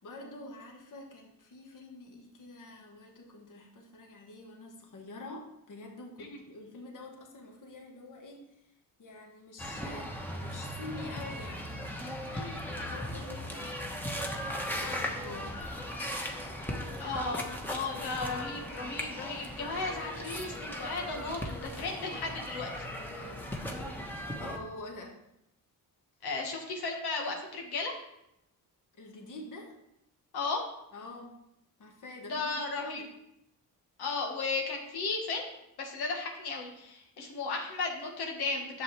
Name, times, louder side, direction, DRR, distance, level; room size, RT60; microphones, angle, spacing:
voice 1, 0.0-8.7 9.0-11.7 12.7-15.6 23.1-23.4 24.4-25.2 28.9-29.7 30.9-31.4 31.8-33.1, left 2 dB, 55° left, 1 dB, 1.6 m, -46 dB
sound 1, 9.6-24.6, equal, 5° left, 1.1 m, -38 dB
voice 2, 17.0-22.8 26.2-27.9 30.3-30.6 32.3-33.0 34.0-35.4 35.8-38.8, left 3 dB, 90° left, 1 dB, 1.6 m, -35 dB
10.5 x 7.3 x 3.3 m, 0.83 s
wide cardioid pair, 135°, 37 cm